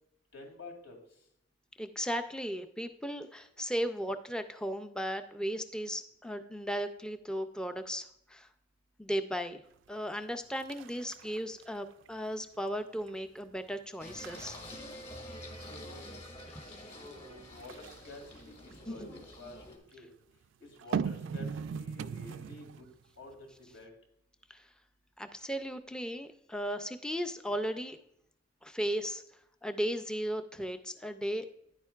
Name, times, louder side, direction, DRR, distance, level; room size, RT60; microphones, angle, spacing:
voice 1, 0.3-1.0 15.7-16.2 17.1-19.6 19.9-20.1 20.6-22.9 23.2-23.5 23.7-23.9, left 2 dB, 75° left, 3 dB, 2.5 m, -50 dB
voice 2, 1.8-8.5 9.0-9.6 9.9-14.6 16.5-16.7 24.5-24.7 25.2-28.0 28.6-29.2 29.6-31.5, equal, 5° left, 8 dB, 0.4 m, -36 dB
sound 1, 9.9-10.2 10.6-12.3 12.7-13.1 13.6-13.7 14.1-16.0 17.5-19.4 20.7-23.0 23.3-23.4, right 6 dB, 70° right, 0.3 m, -39 dB
Singing, 14.0-19.8, left 1 dB, 35° left, 2.2 m, -46 dB
10.0 x 8.8 x 2.4 m, 0.75 s
head